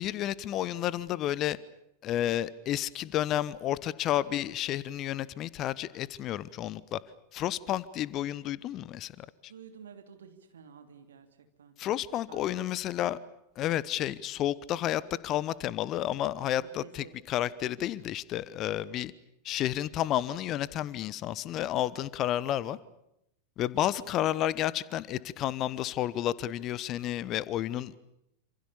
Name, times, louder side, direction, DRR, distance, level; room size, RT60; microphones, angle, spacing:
voice 1, 0.0-1.6 2.0-7.0 7.3-9.3 11.8-13.2 13.6-19.1 19.4-22.8 23.6-28.1, left 12 dB, 35° left, 19 dB, 1.1 m, -31 dB
voice 2, 9.5-11.8 12.3-12.8 16.6-17.5, right 7 dB, 65° right, 7 dB, 2.9 m, -51 dB
28.0 x 27.0 x 7.1 m, 0.81 s
figure-of-eight pair, 90°, 0 cm